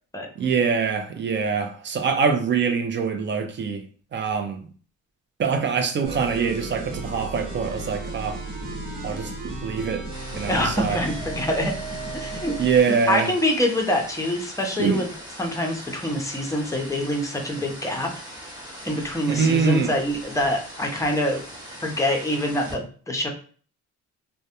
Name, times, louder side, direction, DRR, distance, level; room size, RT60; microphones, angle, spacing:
voice 1, 0.4-3.8 4.1-4.6 5.4-8.4 9.0-10.0 10.3-11.0 12.6-13.3 14.8-15.0 19.3-19.9, right 5 dB, 40° right, 0.4 m, -24 dB
sound 1, 6.0-13.0, right 2 dB, 85° right, 1.0 m, -34 dB
sound 2, 10.1-22.7, equal, 15° right, 1.0 m, -41 dB
voice 2, 10.5-11.7 12.1-12.5 12.9-15.1 15.4-18.1 18.8-21.4 21.8-23.3, left 1 dB, 10° left, 0.6 m, -25 dB
2.2 x 2.1 x 2.8 m
cardioid pair, 90°, 30 cm